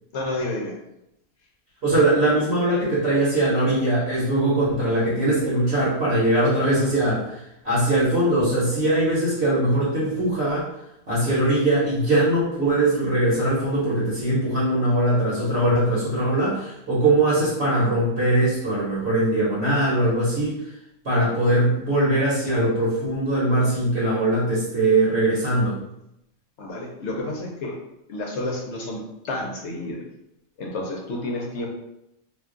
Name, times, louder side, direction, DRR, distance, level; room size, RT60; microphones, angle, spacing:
voice 1, 0.1-0.7 26.6-27.8 28.1-30.0 30.6-31.7, left 2 dB, 65° left, 0 dB, 0.8 m, -30 dB
voice 2, 1.8-10.7 11.1-20.6 21.0-25.8, right 1 dB, 55° right, -7 dB, 1.0 m, -21 dB
2.5 x 2.3 x 3.7 m, 0.84 s
omnidirectional pair, 1.4 m